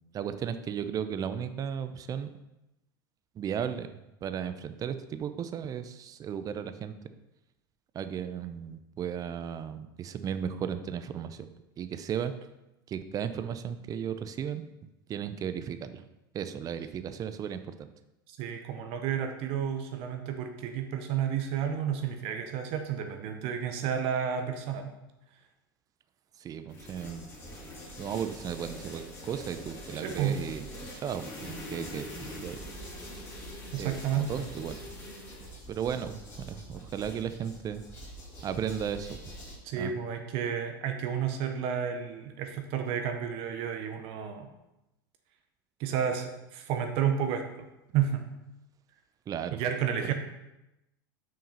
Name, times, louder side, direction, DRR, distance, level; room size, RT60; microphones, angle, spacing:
voice 1, 0.1-2.3 3.4-3.9 4.2-6.9 7.9-11.4 11.8-12.3 12.9-14.7 15.1-16.0 16.3-17.9 26.4-27.2 28.0-30.6 31.0-32.6 33.8-34.8 35.7-37.8 38.4-39.2 39.8-39.9 49.3-49.6, right 8 dB, 30° right, 10 dB, 0.5 m, -35 dB
voice 2, 18.3-24.9 30.0-30.4 33.7-34.5 39.6-44.5 45.8-47.7 47.9-48.2 49.5-50.1, right 8 dB, 55° right, 6 dB, 0.8 m, -31 dB
sound 1, 26.7-39.5, equal, 20° left, 2.8 m, -44 dB
6.1 x 4.6 x 5.6 m, 0.93 s
hypercardioid pair, 105°, 12 cm